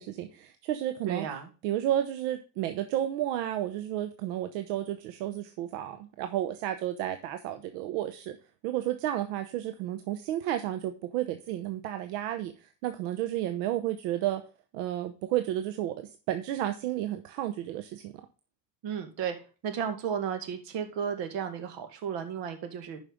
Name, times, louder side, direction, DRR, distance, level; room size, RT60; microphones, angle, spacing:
voice 1, 0.0-1.3 1.6-8.4 8.6-14.4 14.7-18.1, right 12 dB, 80° right, 8 dB, 1.0 m, -32 dB
voice 2, 1.1-1.5 18.8-19.4 19.6-23.0, right 7 dB, 60° right, 8 dB, 2.2 m, -33 dB
11.0 x 5.5 x 3.6 m, 0.34 s
supercardioid pair, 100°, 48 cm